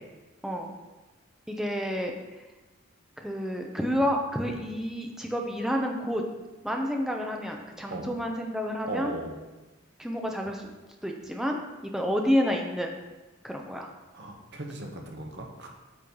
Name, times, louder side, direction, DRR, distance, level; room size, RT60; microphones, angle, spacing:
voice 1, 1.5-2.1 3.2-6.2 6.6-9.1 10.0-10.7 11.0-13.0 13.4-13.9, equal, ahead, 1 dB, 0.6 m, -29 dB
voice 2, 8.8-9.4 14.1-15.7, right 2 dB, 55° right, 1 dB, 1.0 m, -37 dB
8.5 x 3.1 x 5.4 m, 1.2 s
head